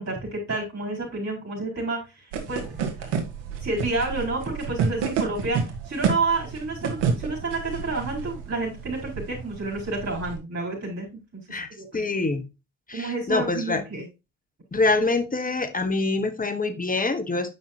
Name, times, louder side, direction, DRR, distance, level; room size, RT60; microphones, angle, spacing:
voice 1, 0.0-3.1 3.6-11.1 11.3-12.0 12.9-14.1, right 3 dB, 30° right, -1 dB, 4.4 m, -30 dB
sound 1, 2.3-10.4, right 6 dB, 70° right, 2.0 m, -30 dB
voice 2, 11.5-12.4 12.9-13.8 14.7-17.5, left 3 dB, 20° left, 10 dB, 1.3 m, -25 dB
8.8 x 5.7 x 2.8 m, 0.26 s
hypercardioid pair, 65°, 44 cm